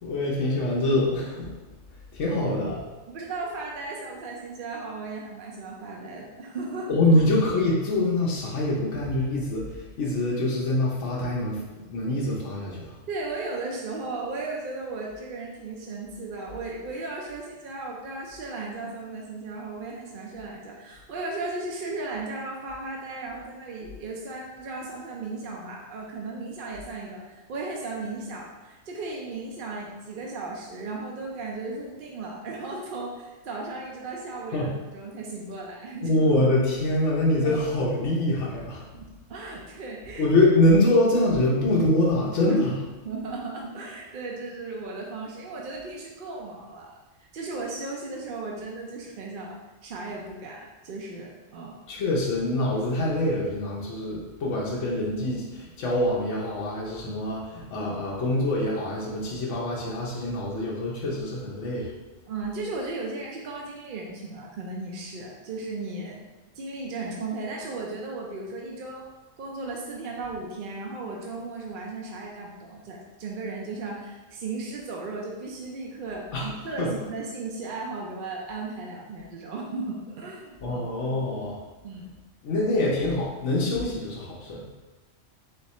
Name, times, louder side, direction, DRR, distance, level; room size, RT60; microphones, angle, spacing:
voice 1, 0.0-1.5 2.1-2.8 6.9-13.0 34.5-34.7 36.0-38.8 40.2-42.9 51.9-61.9 76.3-76.5 76.8-76.9 80.6-81.6 82.4-84.6, left 1 dB, 70° left, -4 dB, 1.1 m, -24 dB
voice 2, 3.1-7.2 13.1-36.1 37.4-37.6 38.9-40.3 42.5-42.6 43.0-46.9 47.2-51.8 62.3-66.2 66.5-69.1 69.4-80.8 81.8-82.1, right 3 dB, 55° right, -2 dB, 0.6 m, -36 dB
3.6 x 3.3 x 4.1 m, 1.2 s
omnidirectional pair, 1.3 m